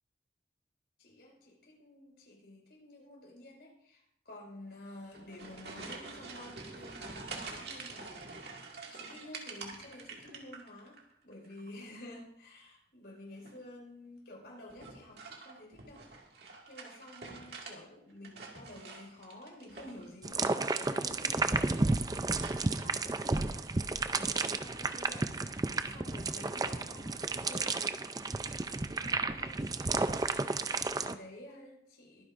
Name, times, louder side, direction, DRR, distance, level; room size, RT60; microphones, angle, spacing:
voice 1, 1.0-8.3 8.9-16.0 16.7-22.2 22.6-28.1 28.8-29.7 30.7-32.2, left 1 dB, 65° left, -1 dB, 5.2 m, -51 dB
sound 1, 5.0-11.0 11.3-11.9 13.3-13.7 14.7-17.8 18.1-20.1 20.6-21.2 21.5-21.9 22.4-22.9, right 4 dB, 60° right, 2.1 m, -47 dB
sound 2, 20.2-31.1, right 3 dB, 20° right, 0.4 m, -32 dB
23.0 x 9.8 x 2.6 m, 0.72 s
head